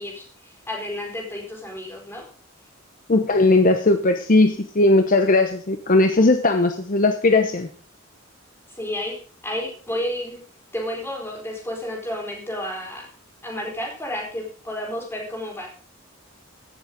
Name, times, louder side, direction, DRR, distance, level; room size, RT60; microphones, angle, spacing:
voice 1, 0.0-2.3 8.7-10.4 10.7-13.1 13.4-15.7, left 1 dB, 10° left, 0 dB, 4.3 m, -31 dB
voice 2, 3.1-7.7, left 2 dB, 45° left, 7 dB, 0.8 m, -18 dB
16.5 x 7.1 x 5.2 m, 0.44 s
head